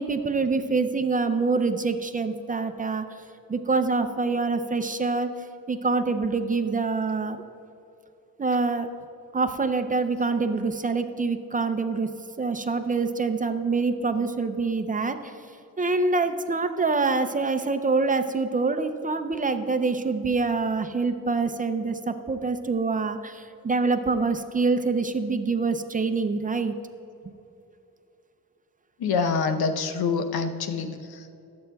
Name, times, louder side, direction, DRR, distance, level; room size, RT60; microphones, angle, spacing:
voice 1, 0.0-3.0 3.5-5.3 5.7-7.4 8.4-8.9 9.3-12.1 12.4-15.3 15.8-26.7, right 4 dB, 25° right, 8 dB, 0.4 m, -25 dB
voice 2, 29.0-31.4, left 5 dB, 85° left, 7 dB, 0.8 m, -26 dB
22.5 x 7.7 x 2.3 m, 2.8 s
wide cardioid pair, 130°, 36 cm